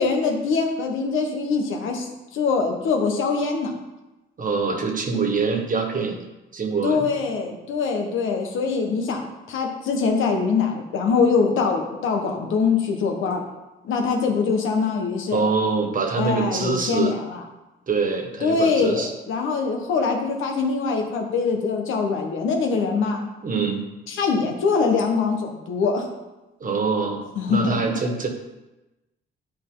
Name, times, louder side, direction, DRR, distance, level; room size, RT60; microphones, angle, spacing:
voice 1, 0.0-3.7 6.8-13.4 13.8-15.4 16.2-17.4 18.4-23.2 24.1-26.1 27.4-27.8, left 5 dB, 85° left, 3 dB, 1.3 m, -23 dB
voice 2, 4.4-6.2 6.5-7.1 15.3-17.1 17.9-19.1 23.4-23.9 26.6-28.3, right 4 dB, 45° right, 3 dB, 1.5 m, -24 dB
10.5 x 4.6 x 3.9 m, 1.0 s
cardioid pair, 90°, 20 cm